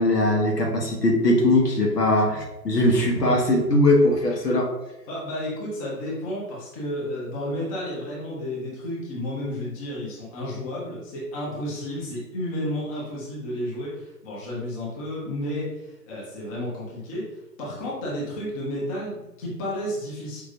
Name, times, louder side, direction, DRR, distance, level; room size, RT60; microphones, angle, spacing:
voice 1, 0.0-4.7, left 1 dB, 75° left, 0 dB, 1.3 m, -20 dB
voice 2, 5.1-20.4, left 1 dB, 20° left, -6 dB, 1.0 m, -32 dB
5.1 x 3.0 x 2.7 m, 0.93 s
figure-of-eight pair, 135°, 48 cm